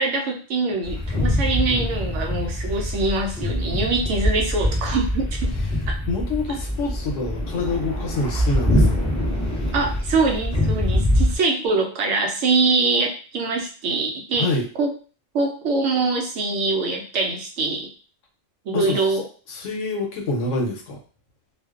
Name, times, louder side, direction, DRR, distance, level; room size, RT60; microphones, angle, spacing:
voice 1, 0.0-5.5 9.7-14.5 14.8-14.9 15.3-17.9 18.7-19.3, right 3 dB, 70° right, 2 dB, 0.9 m, -23 dB
sound 1, 0.8-11.4, left 1 dB, 10° left, 0.4 m, -24 dB
voice 2, 6.1-9.1 14.4-14.7 18.7-19.0 19.5-21.0, left 3 dB, 75° left, 2 dB, 1.0 m, -26 dB
2.4 x 2.2 x 2.3 m, 0.38 s
omnidirectional pair, 1.3 m